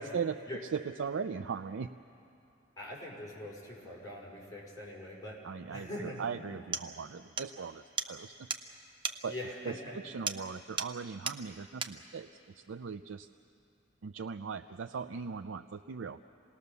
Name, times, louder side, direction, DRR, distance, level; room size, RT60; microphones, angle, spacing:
voice 1, 0.0-0.4 0.7-1.9 5.4-8.5 9.2-9.3 9.6-13.3 14.0-16.2, right 6 dB, 75° right, 9 dB, 0.4 m, -39 dB
voice 2, 2.8-5.4 5.7-6.2 9.2-10.0, left 1 dB, 20° left, -5 dB, 5.1 m, -43 dB
sound 1, 6.2-6.3 6.7-6.9 7.4-7.5 8.0-8.1 8.5-8.7 9.0-9.2 10.3-10.5 10.8-11.0 11.3-11.4 11.8-12.0, right 5 dB, 25° right, 0.7 m, -35 dB
27.0 x 19.0 x 6.8 m, 2.7 s
head